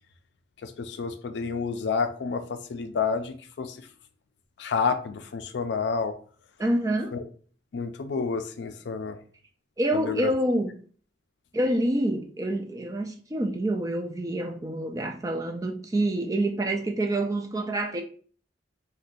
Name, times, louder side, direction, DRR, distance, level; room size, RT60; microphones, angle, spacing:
voice 1, 0.6-3.9 4.6-6.1 7.1-7.2 7.7-9.2 9.9-10.3, left 5 dB, 65° left, 0.4 m, -29 dB
voice 2, 6.6-7.2 9.8-10.7 11.5-18.0, right 1 dB, 20° right, 0.3 m, -27 dB
2.6 x 2.2 x 3.8 m
head